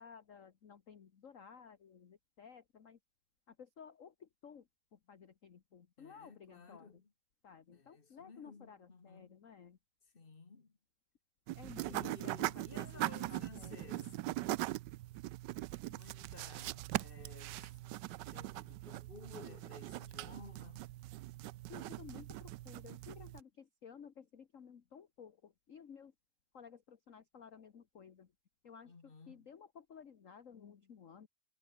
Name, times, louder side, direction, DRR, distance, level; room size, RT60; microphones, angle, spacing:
voice 1, 0.0-3.0 3.5-7.0 7.4-9.8 11.5-14.1 21.7-26.1 26.5-28.3 28.6-31.3, left 7 dB, 40° left, 1.4 m, -55 dB
voice 2, 6.0-7.1 7.7-9.3 10.1-10.8 11.8-14.2 15.9-17.8 18.3-20.9 28.9-29.5, left 4 dB, 25° left, 1.8 m, -55 dB
sound 1, 11.5-23.4, right 16 dB, 80° right, 0.9 m, -41 dB
omnidirectional pair, 2.4 m